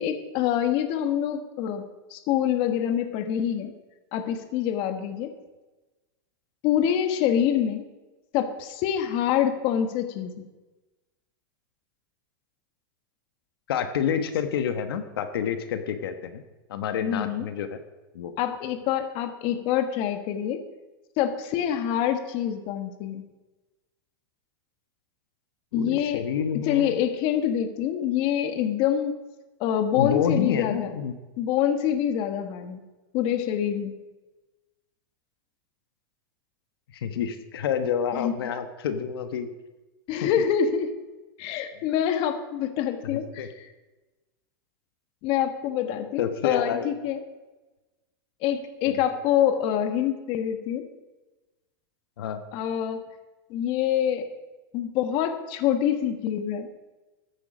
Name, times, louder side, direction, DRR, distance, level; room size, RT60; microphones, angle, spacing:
voice 1, 0.0-1.8 2.1-3.7 4.1-5.3 6.6-7.8 8.3-10.4 17.0-17.4 18.4-20.6 21.2-23.2 25.7-26.2 26.5-29.2 29.6-30.9 31.4-32.8 33.1-33.9 38.1-38.3 40.1-40.9 41.4-43.7 45.2-47.2 48.4-50.9 52.5-53.0 53.5-54.3 54.7-56.7, left 9 dB, 45° left, 8 dB, 1.4 m, -26 dB
voice 2, 13.7-16.4 16.7-17.8 18.1-18.3 25.7-27.0 30.0-31.1 36.9-39.5 40.2-40.3 41.7-41.8 43.1-43.5 46.2-46.9 48.9-49.0 52.2-52.4, left 8 dB, 80° left, 8 dB, 1.2 m, -28 dB
14.0 x 9.9 x 5.1 m, 1.1 s
supercardioid pair, 145°, 12 cm